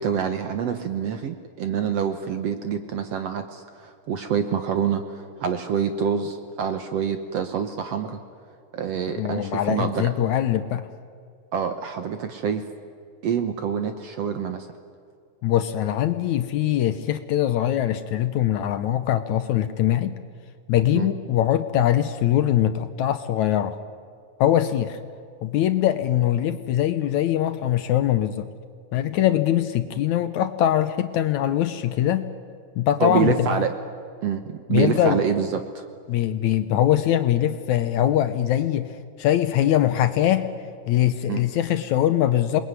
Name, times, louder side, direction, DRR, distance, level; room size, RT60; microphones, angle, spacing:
voice 1, 0.0-8.2 8.7-10.1 11.5-12.6 13.2-14.7 20.9-21.1 33.0-33.7 34.2-35.9 41.3-41.4, right 7 dB, 65° right, 8 dB, 1.7 m, -26 dB
voice 2, 9.1-10.9 15.4-20.2 20.7-23.8 24.4-25.0 25.4-28.5 28.9-32.2 32.8-33.7 34.7-35.2 36.1-40.5 40.9-42.6, left 11 dB, 70° left, 10 dB, 1.9 m, -22 dB
27.5 x 20.5 x 9.6 m, 2.2 s
omnidirectional pair, 4.0 m